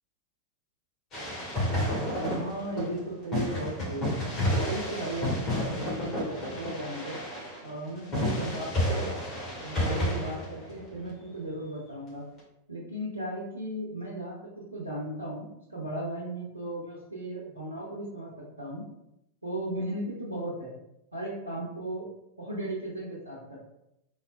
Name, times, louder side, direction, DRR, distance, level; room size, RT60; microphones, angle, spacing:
sound 1, 1.1-3.0 3.3-11.0, equal, 30° left, 1.4 m, -30 dB
voice 1, 1.6-4.1 4.7-7.2 7.6-9.2 9.6-12.2 12.7-14.3 14.7-18.8 19.4-20.7 21.1-22.1 22.4-23.6, right 1 dB, 85° right, -5 dB, 0.6 m, -36 dB
3.8 x 2.0 x 2.4 m, 0.83 s
figure-of-eight pair, 90°, 0 cm